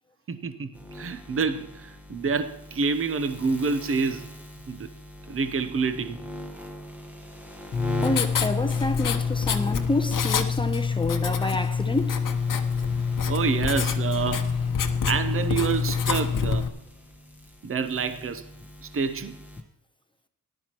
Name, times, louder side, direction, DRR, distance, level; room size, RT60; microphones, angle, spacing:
voice 1, 0.3-4.3 4.7-4.9 5.3-6.2 13.3-14.5 15.1-16.7 17.6-18.4 18.8-19.4, right 5 dB, 35° right, 0.8 m, -28 dB
sound 1, 0.7-19.6, equal, 5° right, 1.3 m, -42 dB
Writing, 7.7-16.7, left 6 dB, 60° left, 0.9 m, -26 dB
voice 2, 8.0-12.2, left 2 dB, 15° left, 0.7 m, -28 dB
18.0 x 11.0 x 3.0 m
wide cardioid pair, 160°, 36 cm